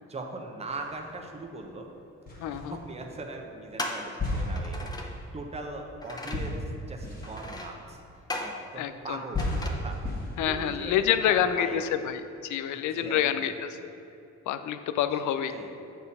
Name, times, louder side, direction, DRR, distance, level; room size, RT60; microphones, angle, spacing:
voice 1, 0.1-1.9 2.5-4.9 5.3-8.0 8.4-11.8 12.7-13.6 15.2-15.7, right 2 dB, 20° right, 2 dB, 0.8 m, -40 dB
sound 1, 0.7-1.4 2.3-3.1 4.2-8.7 9.3-11.3, left 1 dB, 30° left, 1.7 m, -35 dB
sound 2, 1.7-1.8 2.7-2.9 3.8-4.2 4.6-5.2 6.0-6.5 7.2-7.8 8.3-8.7 9.4-9.7, left 1 dB, 15° left, 0.7 m, -37 dB
voice 2, 2.4-2.8 8.7-9.2 10.4-13.8 14.5-15.5, left 10 dB, 75° left, 11 dB, 0.5 m, -27 dB
6.8 x 4.4 x 5.4 m, 2.7 s
cardioid pair, 90°, 30 cm